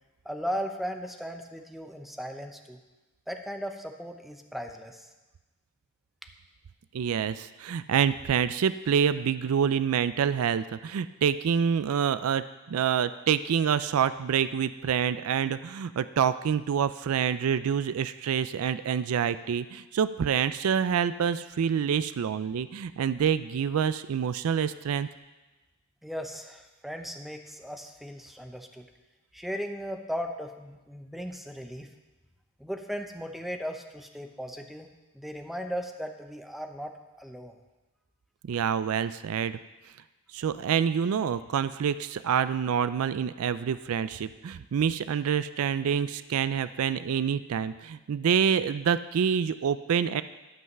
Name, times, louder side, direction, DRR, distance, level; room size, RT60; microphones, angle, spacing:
voice 1, 0.2-2.8 3.3-5.1 26.0-28.9 29.3-31.9 32.6-34.9 35.1-36.9 37.2-37.5, equal, ahead, 5 dB, 0.8 m, -37 dB
voice 2, 6.9-25.1 38.4-39.6 40.3-50.2, right 7 dB, 70° right, 14 dB, 0.4 m, -27 dB
12.5 x 5.6 x 6.6 m, 1.1 s
head